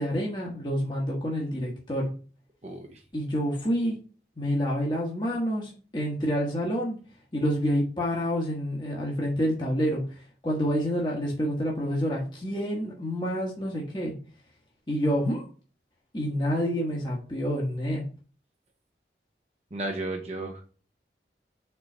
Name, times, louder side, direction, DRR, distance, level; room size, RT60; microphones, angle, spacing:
voice 1, 0.0-2.1 3.1-4.0 4.4-7.0 7.3-10.0 10.4-14.1 14.9-15.5 16.1-18.0, equal, 25° left, -3 dB, 1.2 m, -28 dB
voice 2, 2.6-3.0 19.7-20.7, right 2 dB, 35° right, 2 dB, 0.9 m, -34 dB
4.6 x 3.9 x 5.3 m, 0.38 s
head